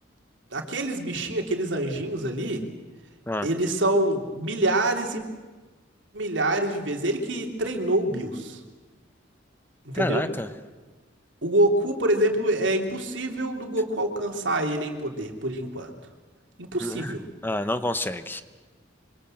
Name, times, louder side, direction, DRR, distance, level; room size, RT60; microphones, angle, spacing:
voice 1, 0.5-2.6 3.4-5.2 6.1-8.6 9.8-10.2 11.4-15.9 16.6-17.2, right 1 dB, 80° right, 3 dB, 3.1 m, -26 dB
voice 2, 9.9-10.5 16.8-17.1 17.4-18.4, left 1 dB, 10° left, 11 dB, 0.9 m, -28 dB
26.0 x 25.0 x 7.8 m, 1.3 s
head